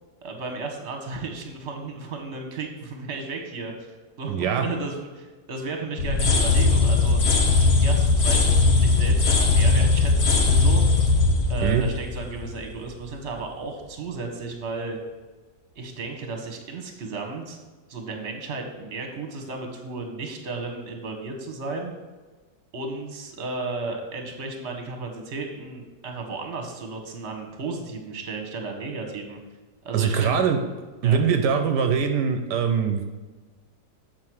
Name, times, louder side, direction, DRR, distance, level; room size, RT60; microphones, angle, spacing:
voice 1, 0.2-7.2 7.8-8.4 8.8-10.8 11.5-15.0 15.7-17.6 17.9-21.9 22.7-29.4 29.8-30.4 31.0-31.2, right 3 dB, 45° right, 3 dB, 1.4 m, -34 dB
voice 2, 4.3-4.7 11.6-11.9 29.9-30.6 31.0-33.0, right 7 dB, 80° right, 6 dB, 1.3 m, -22 dB
sound 1, 6.0-12.8, left 3 dB, 45° left, 1.1 m, -19 dB
7.5 x 4.5 x 6.2 m, 1.3 s
omnidirectional pair, 1.8 m